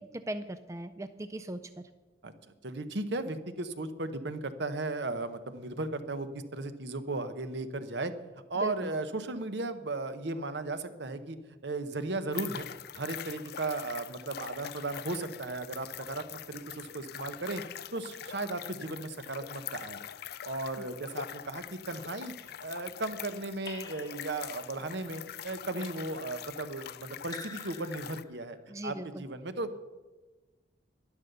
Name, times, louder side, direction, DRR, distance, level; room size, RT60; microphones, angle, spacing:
voice 1, 0.1-1.6 8.6-8.9 20.8-20.9 28.7-29.2, right 1 dB, 15° right, 10 dB, 0.4 m, -39 dB
voice 2, 2.6-8.1 8.5-11.4 11.6-12.7 12.9-17.6 17.9-20.0 20.4-22.3 22.6-29.8, right 2 dB, 60° right, 10 dB, 0.9 m, -36 dB
sound 1, 12.3-28.2, left 9 dB, 55° left, 0.5 m, -44 dB
Raindrop / Drip, 23.7-24.9 27.2-28.6, left 4 dB, 20° left, 0.9 m, -48 dB
12.0 x 11.0 x 6.8 m, 1.2 s
head